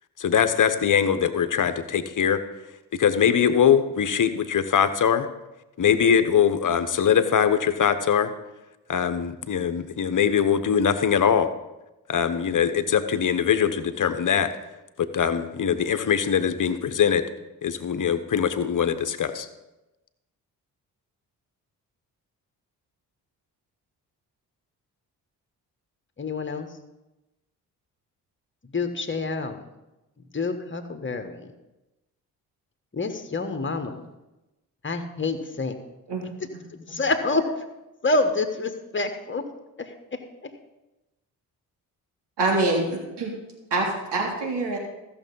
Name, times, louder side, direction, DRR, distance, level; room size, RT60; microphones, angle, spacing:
voice 1, 0.2-2.4 3.0-5.3 5.8-8.3 8.9-11.5 12.1-14.5 15.0-17.2 17.6-19.5, left 8 dB, 45° left, 10 dB, 1.1 m, -22 dB
voice 2, 26.2-26.8 28.6-29.6 30.3-31.5 32.9-34.0 34.8-35.7 36.4-37.6 38.0-39.5 39.8-40.5, left 3 dB, 25° left, 7 dB, 1.6 m, -28 dB
voice 3, 42.4-43.3 43.7-44.8, right 2 dB, 60° right, -1 dB, 3.3 m, -25 dB
14.0 x 6.9 x 5.5 m, 1.0 s
hypercardioid pair, 40°, 46 cm